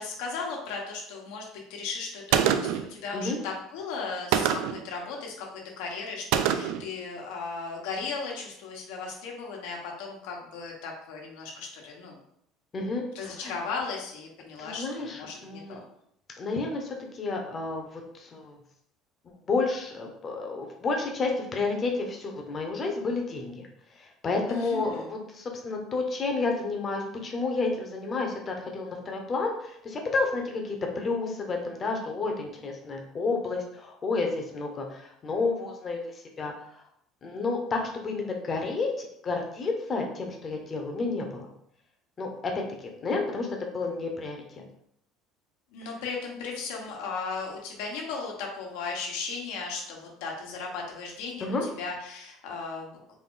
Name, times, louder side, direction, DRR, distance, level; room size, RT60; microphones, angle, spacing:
voice 1, 0.0-12.1 13.1-15.8 24.5-25.1 45.7-53.0, left 4 dB, 90° left, 0 dB, 1.1 m, -36 dB
Gunshot gunfire, 2.3-2.9 4.3-4.9 6.3-6.9, right 9 dB, 75° right, 0.3 m, -25 dB
voice 2, 12.7-13.5 14.6-15.8 16.4-18.6 19.5-23.7 23.9-36.8 37.2-41.5 42.2-43.5 43.7-44.6 51.4-51.7, left 3 dB, 25° left, 2 dB, 0.7 m, -31 dB
4.0 x 2.6 x 3.7 m, 0.72 s
cardioid pair, 165°, 0 cm